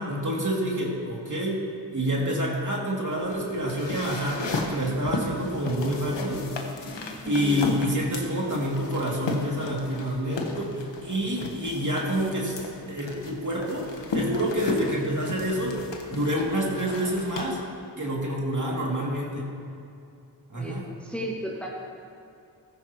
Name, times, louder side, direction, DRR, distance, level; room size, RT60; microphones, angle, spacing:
voice 1, 0.0-1.6 1.9-6.4 7.3-17.6 18.0-19.4 20.5-20.8, equal, 45° right, -3 dB, 2.6 m, -28 dB
sound 1, 3.1-17.5, left 3 dB, 85° left, 1.2 m, -35 dB
voice 2, 7.2-7.8 20.5-21.7, equal, 5° left, -3 dB, 1.9 m, -34 dB
14.5 x 14.0 x 3.0 m, 2.5 s
cardioid pair, 55°, 42 cm